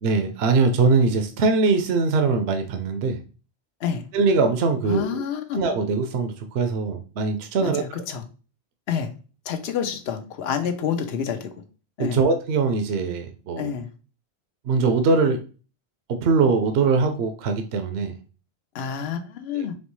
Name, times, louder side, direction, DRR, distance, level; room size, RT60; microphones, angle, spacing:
voice 1, 0.0-3.2 4.1-5.2 5.5-8.0 12.0-13.7 14.7-15.4 16.1-18.2 19.5-19.7, right 4 dB, 75° right, 0.8 m, -22 dB
voice 2, 4.9-5.6 7.6-8.2 8.9-9.1 9.5-11.6 12.0-12.2 13.6-13.9 18.7-19.8, left 7 dB, 70° left, 0.9 m, -28 dB
4.3 x 3.0 x 3.1 m
omnidirectional pair, 1.1 m